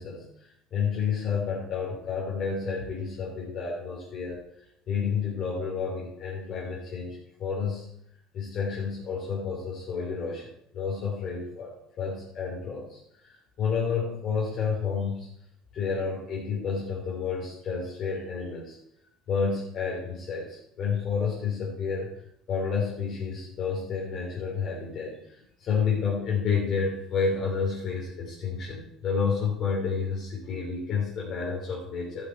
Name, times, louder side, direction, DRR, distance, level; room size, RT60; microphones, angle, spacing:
voice 1, 0.0-4.4 4.9-7.9 8.3-13.3 13.6-15.3 15.7-18.8 19.3-22.1 22.5-32.2, left 5 dB, 40° left, -4 dB, 3.3 m, -30 dB
13.0 x 8.5 x 4.6 m, 0.73 s
cardioid pair, 150°, 0 cm